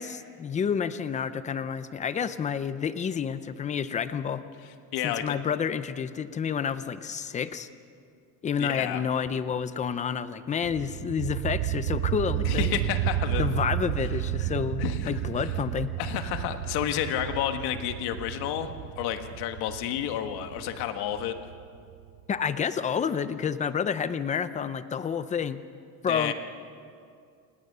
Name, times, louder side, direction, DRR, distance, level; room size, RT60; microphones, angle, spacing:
voice 1, 0.0-4.4 5.0-7.7 8.4-12.7 13.4-15.9 22.3-25.6 26.0-26.3, left 7 dB, 20° left, 13 dB, 0.5 m, -29 dB
voice 2, 4.9-5.3 8.6-9.0 12.4-13.5 14.8-15.1 15.4-15.5 16.0-21.3 26.1-26.3, left 10 dB, 65° left, 7 dB, 1.7 m, -30 dB
sound 1, 10.6-22.2, right 13 dB, 75° right, 1.3 m, -32 dB
27.5 x 19.5 x 6.7 m, 2.3 s
cardioid pair, 175°, 41 cm